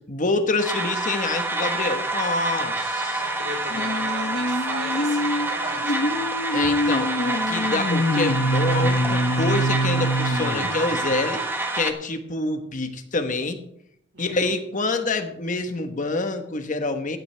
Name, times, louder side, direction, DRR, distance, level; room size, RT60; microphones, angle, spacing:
voice 1, 0.1-3.2 6.5-11.5 11.7-13.6 14.2-17.2, left 3 dB, 45° left, 7 dB, 1.2 m, -26 dB
sound 1, 0.6-11.9, right 2 dB, 10° right, 1.2 m, -27 dB
voice 2, 3.1-6.3 14.1-14.5, right 1 dB, 70° right, 1 dB, 4.3 m, -37 dB
sound 2, 3.7-11.3, equal, 65° left, 0.9 m, -25 dB
15.5 x 10.5 x 3.4 m, 0.72 s
head